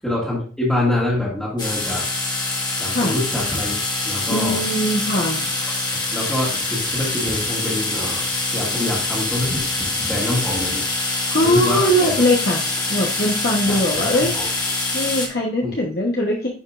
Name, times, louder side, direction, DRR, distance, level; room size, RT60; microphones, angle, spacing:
voice 1, 0.0-2.0 2.8-3.7 4.0-4.6 6.1-8.2 8.5-9.6 10.0-10.8 11.4-12.2 13.7-13.8 14.1-14.4 15.6-15.9, left 1 dB, 5° left, -7 dB, 2.0 m, -25 dB
sound 1, 1.6-15.3, left 2 dB, 20° left, 1.6 m, -25 dB
voice 2, 4.3-5.5 11.3-12.6 12.9-14.6 14.9-16.5, equal, 50° left, -2 dB, 1.2 m, -21 dB
10.5 x 5.3 x 2.5 m, 0.41 s
head